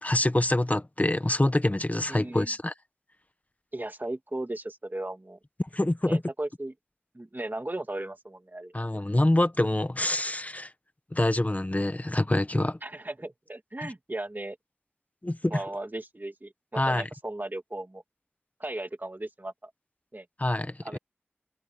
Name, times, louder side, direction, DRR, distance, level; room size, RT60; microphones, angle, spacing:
voice 1, 0.0-2.7 5.7-6.2 8.7-10.7 11.1-12.8 15.2-15.6 16.8-17.0 20.4-21.0, left 1 dB, 40° left, 1.1 m, -26 dB
voice 2, 2.1-2.5 3.7-5.4 6.0-6.7 7.1-8.7 12.8-14.6 15.5-18.0 18.6-19.7 20.1-20.3 20.8-21.0, right 1 dB, 50° right, 2.3 m, -36 dB
wide cardioid pair, 45°, 4 cm